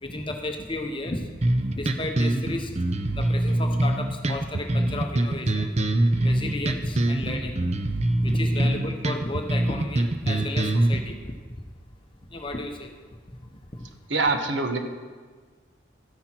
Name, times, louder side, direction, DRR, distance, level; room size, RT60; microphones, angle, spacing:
voice 1, 0.0-1.3 1.7-2.7 3.1-5.8 6.2-7.6 8.2-11.3 12.3-12.9 13.3-13.4 13.7-13.9, left 2 dB, 25° left, 4 dB, 0.9 m, -33 dB
sound 1, 1.4-11.0, right 1 dB, 30° right, 0.6 m, -24 dB
voice 2, 14.1-14.8, right 3 dB, 60° right, 6 dB, 1.1 m, -25 dB
13.0 x 10.0 x 4.4 m, 1.5 s
head